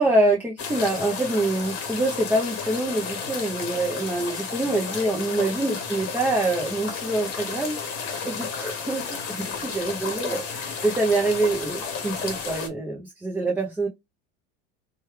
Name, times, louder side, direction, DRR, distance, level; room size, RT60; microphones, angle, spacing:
voice 1, 0.0-13.9, right 2 dB, 5° right, 0.4 m, -25 dB
sound 1, 0.6-12.7, left 5 dB, 45° left, 1.1 m, -32 dB
3.0 x 2.3 x 3.1 m
supercardioid pair, 145°, 33 cm